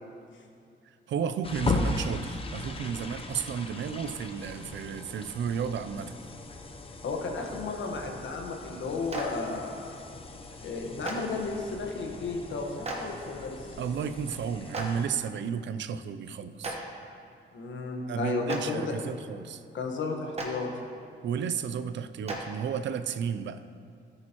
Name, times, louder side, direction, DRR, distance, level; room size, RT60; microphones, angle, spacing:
voice 1, 1.1-6.1 13.8-16.8 18.0-19.6 21.2-23.6, right 7 dB, 70° right, 12 dB, 0.4 m, -33 dB
sound 1, 1.4-15.1, left 3 dB, 30° left, 0.6 m, -38 dB
voice 2, 7.0-10.0 10.6-13.6 17.5-19.0 19.7-20.7, left 3 dB, 75° left, 2 dB, 1.3 m, -33 dB
Clapping, 9.1-9.2 11.0-11.1 12.8-13.0 14.7-14.8 16.6-16.7 18.4-18.6 20.3-20.5 22.3-22.4, right 3 dB, 30° right, 1.3 m, -33 dB
14.0 x 8.7 x 3.0 m, 2.4 s
wide cardioid pair, 130°, 20 cm